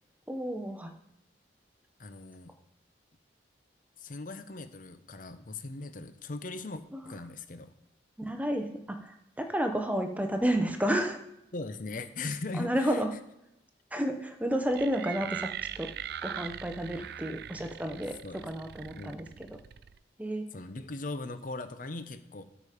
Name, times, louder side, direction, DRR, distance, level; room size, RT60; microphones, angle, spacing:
voice 1, 0.3-0.9 6.9-7.1 8.2-11.2 12.6-13.1 13.9-15.5 15.8-15.9 16.2-18.1 18.4-19.6 20.2-20.5, equal, 10° right, 6 dB, 0.7 m, -31 dB
voice 2, 2.0-2.5 4.0-7.7 11.5-13.0 18.2-18.4 18.9-19.2 20.5-22.4, left 3 dB, 45° left, 10 dB, 0.6 m, -39 dB
sound 1, 14.7-20.0, right 9 dB, 55° right, 0.3 m, -41 dB
13.0 x 5.0 x 5.0 m, 0.87 s
head